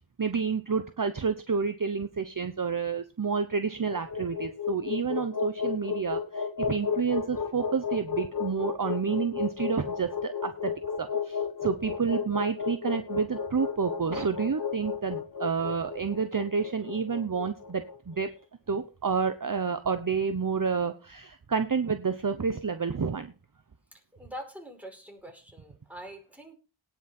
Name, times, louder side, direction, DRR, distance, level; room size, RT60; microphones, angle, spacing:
voice 1, 0.2-10.7 11.0-18.3 18.7-23.3, right 5 dB, 40° right, 9 dB, 0.9 m, -29 dB
sound 1, 3.7-18.0, left 6 dB, 40° left, 1.5 m, -33 dB
voice 2, 24.1-26.5, equal, 5° right, 2 dB, 5.0 m, -44 dB
18.0 x 6.1 x 4.4 m, 0.35 s
wide cardioid pair, 80°, 49 cm